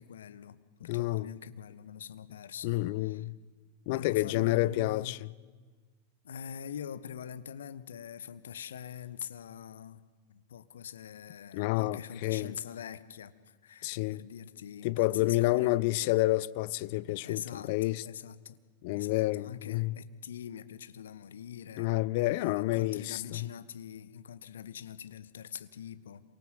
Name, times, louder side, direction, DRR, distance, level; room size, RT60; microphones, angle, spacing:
voice 1, 0.0-2.7 3.0-3.2 3.9-5.2 6.2-15.8 17.2-18.6 18.9-21.9 22.4-26.2, left 8 dB, 65° left, 1.3 m, -44 dB
voice 2, 0.8-1.3 2.6-3.3 3.9-5.3 11.5-12.5 13.8-14.2 14.8-18.0 18.8-20.0 21.8-23.5, left 18 dB, 50° left, 0.7 m, -29 dB
27.5 x 24.0 x 7.6 m
figure-of-eight pair, 90°, 0 cm